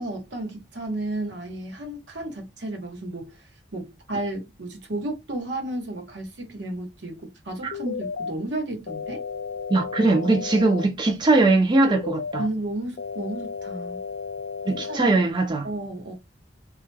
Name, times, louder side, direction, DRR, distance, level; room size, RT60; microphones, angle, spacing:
voice 1, 0.0-3.4 3.7-9.2 12.4-14.0 14.7-15.3 15.6-16.1, right 1 dB, 75° right, 1.0 m, -33 dB
sound 1, 7.7-8.3 8.9-10.9 11.9-12.5 13.0-15.0, left 5 dB, 65° left, 0.3 m, -33 dB
voice 2, 9.7-12.4 14.7-15.6, right 2 dB, 25° right, 0.4 m, -20 dB
2.2 x 2.1 x 3.2 m
head